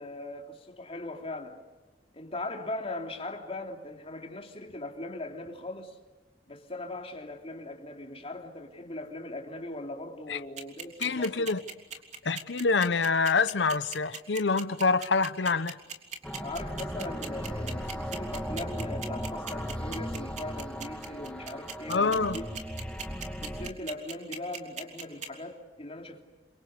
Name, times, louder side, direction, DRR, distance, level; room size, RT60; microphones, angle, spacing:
voice 1, 0.0-1.6 2.1-6.0 6.5-11.6 16.4-22.4 23.4-26.2, left 2 dB, 35° left, 3.3 m, -40 dB
sound 1, 10.6-25.3, right 6 dB, 40° right, 3.5 m, -38 dB
voice 2, 11.0-11.6 12.2-15.8 21.9-22.4, left 4 dB, 80° left, 0.9 m, -26 dB
sound 2, 16.2-23.7, equal, 5° left, 1.8 m, -37 dB
29.0 x 26.0 x 6.8 m
head